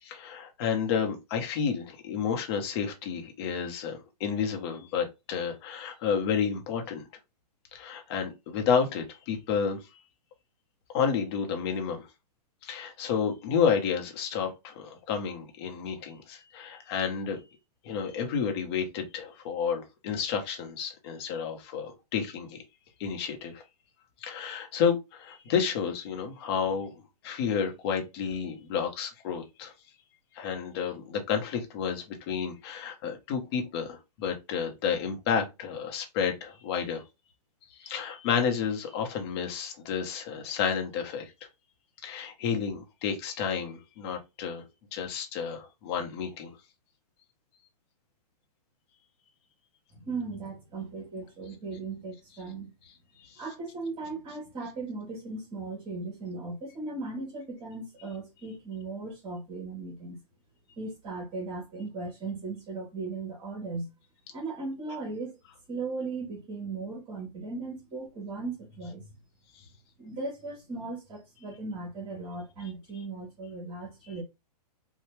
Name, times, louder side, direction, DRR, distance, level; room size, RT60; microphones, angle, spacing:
voice 1, 0.0-7.0 7.7-9.9 10.9-12.1 12.6-17.4 17.8-22.6 23.0-23.6 24.2-26.9 27.2-29.7 30.3-37.0 37.7-41.3 42.0-44.6 44.9-46.6 53.2-53.4 69.5-69.6, left 6 dB, 40° left, 1.0 m, -31 dB
voice 2, 49.9-52.7 53.4-60.2 60.8-63.9 64.3-65.4 65.7-69.2 70.0-74.2, right 3 dB, 25° right, 1.3 m, -37 dB
2.8 x 2.3 x 3.2 m
hypercardioid pair, 145°, 21 cm